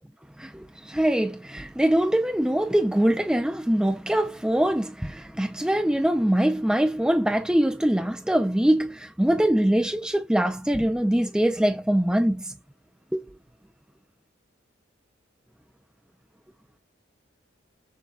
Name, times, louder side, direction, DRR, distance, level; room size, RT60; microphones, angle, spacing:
voice 1, 0.4-12.5 13.1-13.3, right 1 dB, 5° right, 0.3 m, -23 dB
6.4 x 2.2 x 3.4 m
head